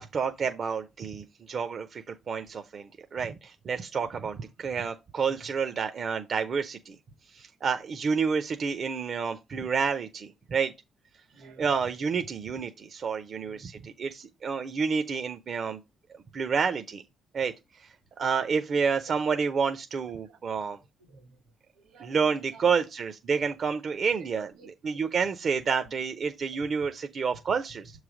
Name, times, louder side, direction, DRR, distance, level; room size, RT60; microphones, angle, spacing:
voice 1, 0.0-7.0 7.3-10.7 11.6-15.8 16.3-17.0 17.3-17.5 18.2-20.8 22.0-24.5 24.8-27.9, right 5 dB, 50° right, 0.5 m, -29 dB
voice 2, 11.3-11.8 13.3-13.6 19.1-19.2 20.2-20.4 21.0-21.4 21.7-22.6 24.1-25.0 27.2-27.3, right 4 dB, 85° right, 1.7 m, -52 dB
6.9 x 3.2 x 4.9 m
cardioid pair, 90°, 0 cm